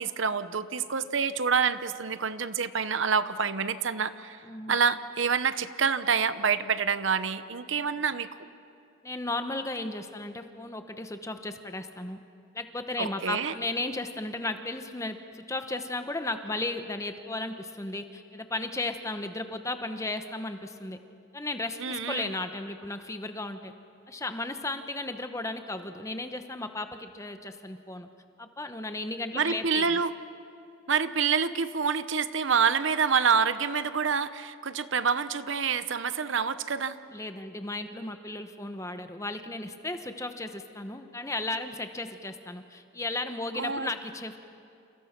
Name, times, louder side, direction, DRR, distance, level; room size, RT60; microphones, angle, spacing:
voice 1, 0.0-4.4 4.7-8.3 13.0-13.5 21.8-22.3 29.3-30.1 30.9-37.0 43.5-43.9, right 6 dB, 65° right, 12 dB, 0.8 m, -27 dB
voice 2, 4.5-4.8 9.0-12.2 12.5-21.0 21.3-23.7 24.1-28.1 28.4-30.0 37.1-44.4, left 2 dB, 15° left, 7 dB, 1.1 m, -35 dB
29.0 x 28.0 x 6.0 m, 2.5 s
head